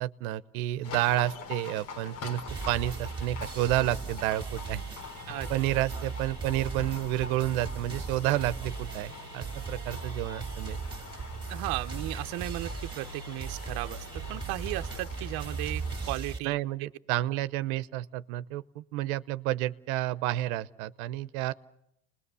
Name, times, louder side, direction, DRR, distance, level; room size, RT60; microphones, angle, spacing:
voice 1, 0.0-4.8 5.5-10.8 16.4-21.5, right 15 dB, 85° right, 15 dB, 0.9 m, -30 dB
Livestock farm animals working animals, 0.8-16.1, left 4 dB, 90° left, 4.1 m, -44 dB
sound 1, 2.5-16.4, right 5 dB, 10° right, 2.3 m, -38 dB
voice 2, 11.5-16.6, right 18 dB, 60° right, 8 dB, 0.9 m, -35 dB
29.5 x 20.5 x 6.9 m, 0.80 s
cardioid pair, 140°, 41 cm